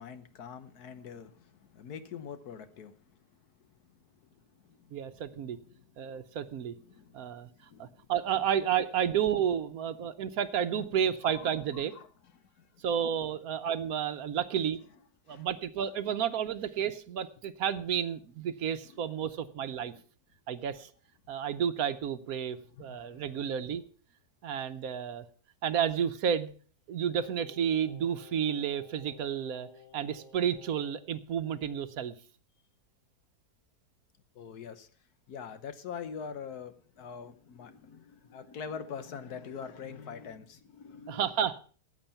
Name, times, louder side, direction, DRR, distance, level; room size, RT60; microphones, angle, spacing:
voice 1, 0.0-3.0 4.7-4.9 5.3-5.4 5.7-5.8 6.9-7.1 7.7-7.9 10.8-10.9 11.2-12.1 12.6-12.7 15.3-15.5 22.8-23.1 34.3-34.9 35.3-41.2, left 6 dB, 70° left, 11 dB, 1.5 m, -44 dB
voice 2, 4.9-5.6 6.0-6.7 7.1-7.5 7.8-11.9 12.8-14.8 15.3-19.9 20.5-20.9 21.3-23.8 24.4-25.2 25.6-26.5 26.9-29.7 29.9-32.2 41.1-41.6, right 8 dB, 65° right, 11 dB, 1.1 m, -31 dB
Singing, 27.1-31.0 31.3-31.4, left 3 dB, 20° left, 2.9 m, -53 dB
14.5 x 9.0 x 5.7 m, 0.43 s
omnidirectional pair, 1.7 m